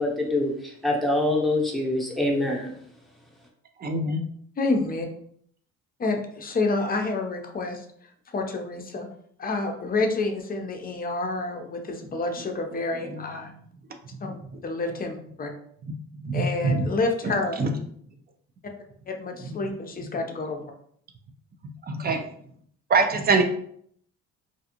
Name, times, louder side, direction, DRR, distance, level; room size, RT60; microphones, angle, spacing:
voice 1, 0.0-2.7, left 1 dB, ahead, -2 dB, 0.9 m, -25 dB
voice 2, 3.8-4.3 16.2-16.9 17.6-17.7 21.9-22.2 22.9-23.4, right 3 dB, 30° right, 6 dB, 0.5 m, -23 dB
voice 3, 4.6-5.1 6.0-7.8 8.3-9.1 9.4-13.5 14.2-14.3 14.6-15.5 16.3-17.6 19.1-20.6, left 3 dB, 30° left, 3 dB, 0.6 m, -28 dB
2.5 x 2.3 x 2.8 m, 0.64 s
supercardioid pair, 80°, 30 cm